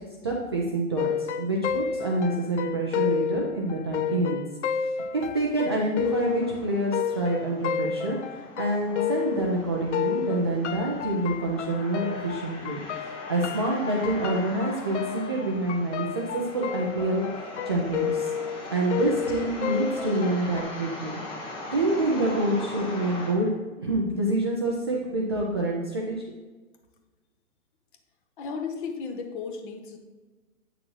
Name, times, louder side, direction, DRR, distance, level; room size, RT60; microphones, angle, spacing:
voice 1, 0.2-4.4 4.8-12.8 13.3-16.1 16.3-18.3 18.7-21.2 21.7-23.5 23.8-26.2, right 1 dB, 20° right, -4 dB, 0.3 m, -27 dB
sound 1, 1.0-9.6 9.9-20.6, left 7 dB, 55° left, 0.5 m, -31 dB
sound 2, 6.0-23.3, left 2 dB, 10° left, 0.7 m, -41 dB
voice 2, 28.4-30.0, left 5 dB, 35° left, 5 dB, 1.0 m, -34 dB
8.8 x 6.3 x 3.1 m, 1.3 s
hypercardioid pair, 145°, 43 cm